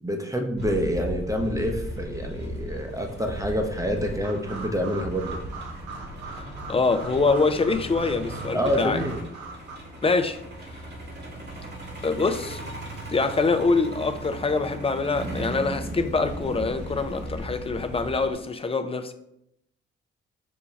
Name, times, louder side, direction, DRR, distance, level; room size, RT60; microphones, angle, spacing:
voice 1, 0.0-5.4 8.5-9.3, equal, 10° right, 0.7 m, -27 dB
Truck, 0.6-18.3, equal, 35° right, 1.3 m, -37 dB
sound 1, 4.2-9.8, right 4 dB, 80° right, 0.7 m, -41 dB
voice 2, 6.4-9.0 10.0-10.4 12.0-12.6 13.1-19.1, left 3 dB, 20° left, 0.4 m, -25 dB
5.3 x 2.2 x 3.1 m
hypercardioid pair, 45°, 29 cm